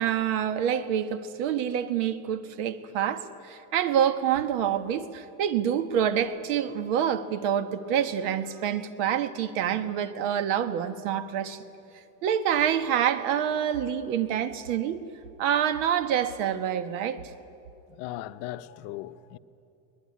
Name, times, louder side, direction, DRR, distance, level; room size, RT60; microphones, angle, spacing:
voice 1, 0.0-11.6 12.2-15.0 15.4-17.2, right 9 dB, 70° right, 1.5 m, -27 dB
voice 2, 17.9-19.4, left 14 dB, 55° left, 0.8 m, -38 dB
22.0 x 20.0 x 9.8 m
cardioid pair, 175°, 39 cm